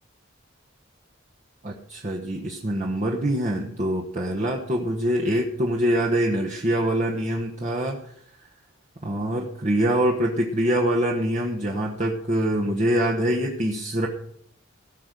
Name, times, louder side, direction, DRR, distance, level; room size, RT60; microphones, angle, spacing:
voice 1, 1.6-8.1 9.0-14.1, right 1 dB, 35° right, -1 dB, 1.1 m, -24 dB
17.0 x 6.1 x 6.8 m, 0.71 s
head